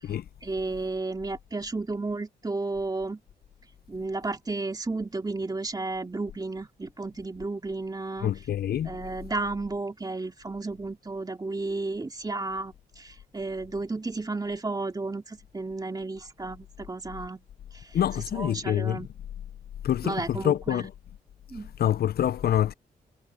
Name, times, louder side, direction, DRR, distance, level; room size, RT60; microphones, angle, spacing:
voice 1, 0.4-3.2 3.9-8.3 8.9-17.4 18.3-19.1 20.0-20.9 21.5-21.7, right 3 dB, 20° right, 2.5 m, -33 dB
voice 2, 8.2-8.9 17.9-19.1 19.8-20.9 21.8-22.7, left 10 dB, 65° left, 0.5 m, -26 dB
cardioid pair, 85°, 17 cm